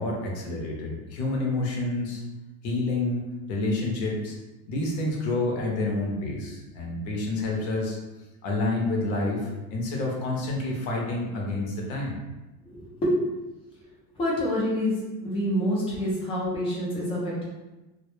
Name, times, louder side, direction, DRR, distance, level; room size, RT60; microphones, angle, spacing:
voice 1, 0.0-2.2 2.6-3.2 3.5-4.4 4.7-8.0 8.4-12.2, left 2 dB, 55° left, -1 dB, 0.7 m, -28 dB
voice 2, 12.7-13.2 14.2-15.0 15.2-17.4, equal, 15° left, -6 dB, 0.4 m, -27 dB
2.1 x 2.1 x 3.0 m, 1.1 s
supercardioid pair, 155°, 43 cm